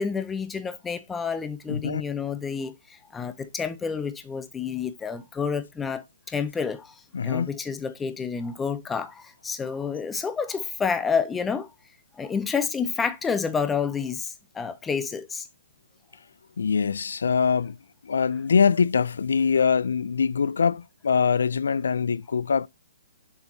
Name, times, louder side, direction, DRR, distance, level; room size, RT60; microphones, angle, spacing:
voice 1, 0.0-6.9 7.2-11.7 12.2-15.5, left 6 dB, 5° left, 0.5 m, -29 dB
voice 2, 1.7-2.0 7.1-7.5 16.6-17.8 18.1-22.7, left 6 dB, 85° left, 0.3 m, -23 dB
7.1 x 6.2 x 2.7 m
hypercardioid pair, 170°, 0 cm